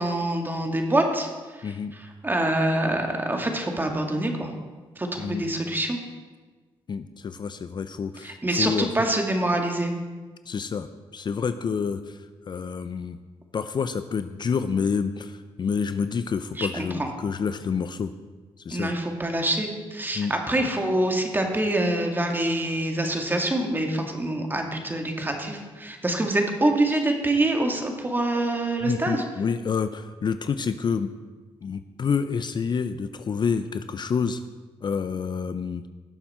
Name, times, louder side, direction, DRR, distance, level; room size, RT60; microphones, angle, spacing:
voice 1, 0.0-4.5 5.0-6.0 8.2-9.9 16.6-17.1 18.7-29.2, right 1 dB, 20° right, 3 dB, 2.1 m, -25 dB
voice 2, 1.6-1.9 5.2-5.4 6.9-8.9 10.5-13.2 13.5-18.1 18.6-18.9 20.2-20.3 28.8-31.1 31.6-34.4 34.8-35.8, left 6 dB, 45° left, 11 dB, 0.6 m, -28 dB
17.5 x 7.1 x 4.4 m, 1.3 s
cardioid pair, 70°, 10 cm